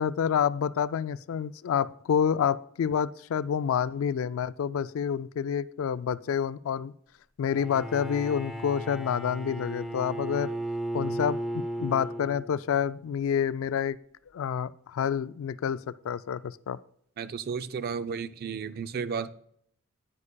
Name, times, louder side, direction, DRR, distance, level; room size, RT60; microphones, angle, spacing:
voice 1, 0.0-6.9 7.4-10.5 10.9-11.4 11.8-14.0 14.3-16.8, left 8 dB, 65° left, 0.3 m, -28 dB
Bowed string instrument, 7.4-12.7, right 1 dB, ahead, 0.6 m, -35 dB
voice 2, 17.2-19.3, right 6 dB, 45° right, 0.4 m, -33 dB
9.7 x 9.7 x 2.2 m
head